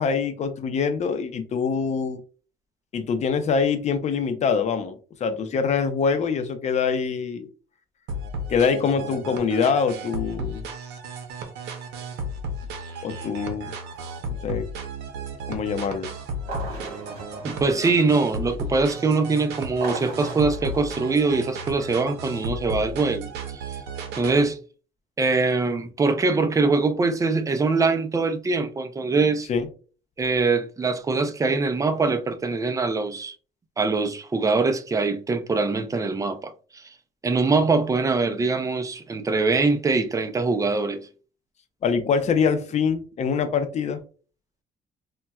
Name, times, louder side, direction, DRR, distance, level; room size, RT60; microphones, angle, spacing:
voice 1, 0.0-2.2 2.9-7.5 8.5-10.6 13.0-13.7 14.3-14.7 15.5-16.1 29.5-29.7 41.8-44.0, left 6 dB, 40° left, 0.6 m, -24 dB
Fela Pena, 8.1-24.5, right 1 dB, 85° right, 0.7 m, -34 dB
sound 1, 16.4-18.6 19.6-22.2, right 3 dB, 65° right, 1.2 m, -38 dB
voice 2, 17.4-23.3 23.5-23.8 24.2-24.6 25.2-29.5 30.2-33.4 33.8-36.8 37.2-41.0, right 3 dB, 20° right, 0.5 m, -23 dB
4.0 x 2.2 x 2.3 m
cardioid pair, 110°, 17 cm